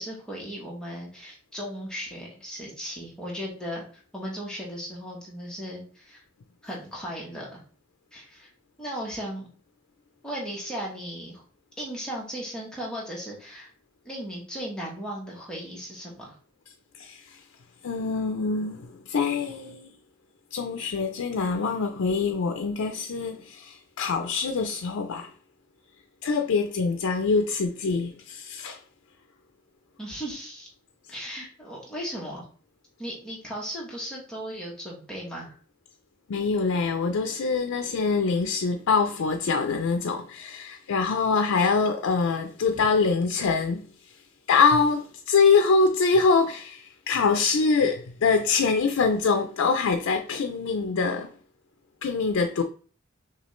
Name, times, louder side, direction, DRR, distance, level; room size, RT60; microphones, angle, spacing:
voice 1, 0.0-6.2 6.6-7.6 8.1-8.5 8.8-9.5 10.2-11.4 11.8-13.7 14.0-16.4 30.0-30.7 31.1-32.4 33.0-35.6, equal, 5° left, 1.1 m, -36 dB
voice 2, 17.0-17.4 17.8-19.9 20.5-25.3 26.2-28.8 36.3-43.8 44.5-51.3 52.0-52.6, left 4 dB, 85° left, 0.4 m, -24 dB
6.0 x 2.4 x 3.1 m
head